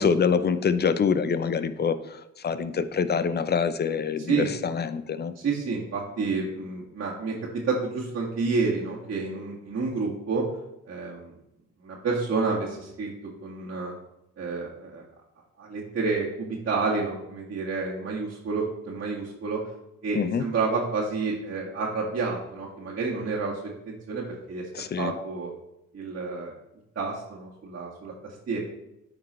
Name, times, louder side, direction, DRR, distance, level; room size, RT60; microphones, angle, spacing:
voice 1, 0.0-5.3 20.1-20.4 24.7-25.1, left 6 dB, 35° left, 13 dB, 0.6 m, -25 dB
voice 2, 5.4-10.4 10.9-11.3 11.8-13.1 13.4-13.9 14.4-15.0 15.6-19.6 20.0-24.7 25.0-25.5 25.9-26.5 27.0-28.6, right 4 dB, 45° right, -6 dB, 1.9 m, -29 dB
9.7 x 5.2 x 3.1 m, 0.87 s
cardioid pair, 90°, 30 cm